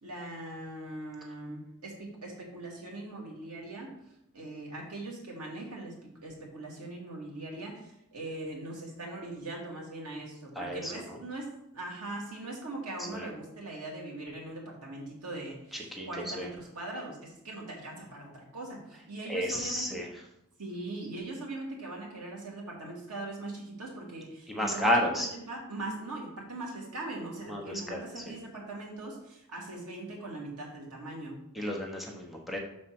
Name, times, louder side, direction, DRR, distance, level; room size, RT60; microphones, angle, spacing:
voice 1, 0.0-3.9 4.3-5.9 6.2-11.5 11.7-19.9 20.6-24.9 25.2-31.4, right 2 dB, 90° right, -2 dB, 2.4 m, -40 dB
voice 2, 10.6-11.2 13.1-13.3 15.7-16.5 19.3-20.1 24.5-25.3 27.5-28.2 31.5-32.6, equal, ahead, -1 dB, 0.9 m, -32 dB
6.5 x 4.3 x 5.9 m, 0.81 s
head